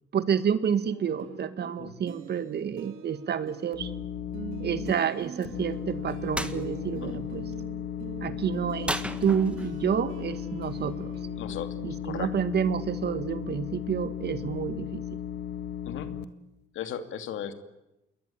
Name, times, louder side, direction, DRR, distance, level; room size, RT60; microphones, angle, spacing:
voice 1, 0.1-3.9 4.6-7.4 8.2-8.9 9.2-11.1 11.8-15.0, right 7 dB, 55° right, 12 dB, 1.9 m, -29 dB
sound 1, 0.8-11.6, right 8 dB, 85° right, 3.0 m, -45 dB
sound 2, 3.7-4.9 5.4-16.2, left 9 dB, 55° left, 1.8 m, -36 dB
sound 3, 6.3-6.6 8.8-9.8, right 1 dB, 5° right, 1.7 m, -33 dB
voice 2, 11.4-11.7 12.0-12.3 15.9-16.1 16.7-17.5, left 9 dB, 80° left, 8 dB, 2.7 m, -36 dB
28.0 x 22.0 x 8.7 m, 0.92 s
cardioid pair, 90°, 20 cm